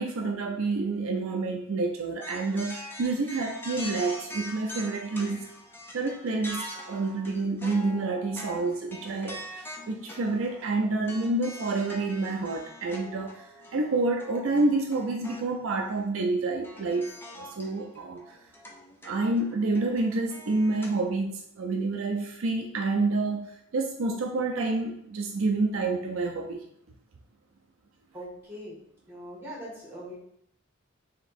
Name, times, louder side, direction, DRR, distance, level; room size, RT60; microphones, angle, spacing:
voice 1, 0.0-5.4 5.9-9.4 9.9-13.4 13.7-17.1 17.4-18.2 19.0-26.6, right 3 dB, 70° right, 2 dB, 0.4 m, -28 dB
sound 1, 2.2-15.5 15.9-16.0 16.6-21.0, left 1 dB, 10° left, 0.4 m, -43 dB
voice 2, 28.1-28.8 29.1-30.1, equal, 10° right, -6 dB, 1.5 m, -41 dB
3.4 x 2.9 x 4.1 m, 0.72 s
head